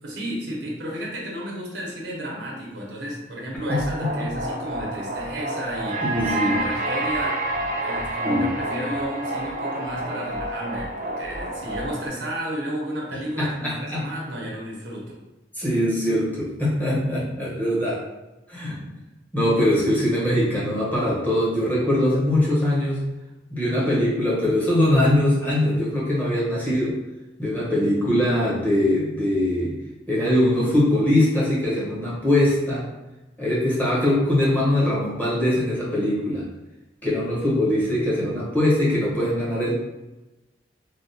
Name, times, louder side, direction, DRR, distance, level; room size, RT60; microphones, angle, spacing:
voice 1, 0.0-6.0 6.4-7.4 7.7-15.2, equal, 70° right, -3 dB, 0.8 m, -32 dB
voice 2, 3.7-4.1 6.0-6.6 8.2-8.5 13.4-14.1 15.5-18.0 18.5-18.8 19.3-23.0 23.5-27.0 27.4-29.8 30.1-32.9 33.4-36.5 37.0-39.8, left 1 dB, 10° left, -7 dB, 0.8 m, -22 dB
sound 1, 3.7-12.1, right 1 dB, 45° right, 0.5 m, -29 dB
3.3 x 2.2 x 2.6 m, 1.0 s
head